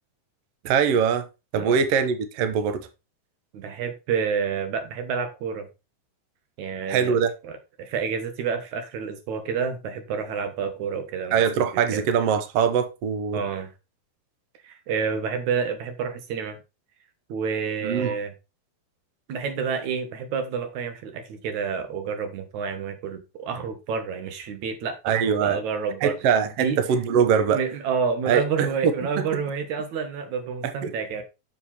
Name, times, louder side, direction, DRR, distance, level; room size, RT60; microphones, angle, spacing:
voice 1, 0.6-1.3 1.5-2.9 6.9-7.3 11.3-13.4 17.8-18.2 25.0-25.6 26.0-27.6 28.3-29.4 30.6-30.9, right 7 dB, 85° right, 1.3 m, -23 dB
voice 2, 3.5-5.7 6.6-7.2 7.4-11.4 11.7-12.1 13.3-13.7 14.6-16.6 17.3-18.3 19.3-26.2 26.6-26.8 27.5-31.2, right 6 dB, 65° right, 2.4 m, -29 dB
7.5 x 6.6 x 4.2 m
omnidirectional pair, 4.1 m